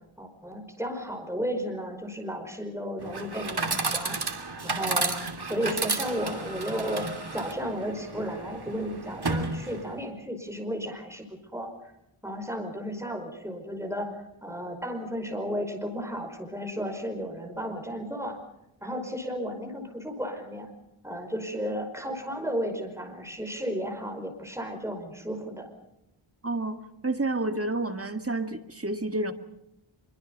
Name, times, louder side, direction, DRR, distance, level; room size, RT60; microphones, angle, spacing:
voice 1, 0.2-11.3 11.5-11.7 12.2-18.4 18.8-20.7 21.0-25.7, equal, 5° right, 4 dB, 5.1 m, -34 dB
Chatter / Coin (dropping), 3.0-10.0, right 3 dB, 50° right, 2.7 m, -32 dB
voice 2, 26.4-29.3, right 2 dB, 30° right, 7 dB, 1.9 m, -30 dB
25.0 x 23.5 x 5.4 m, 0.84 s
wide cardioid pair, 80°, 50 cm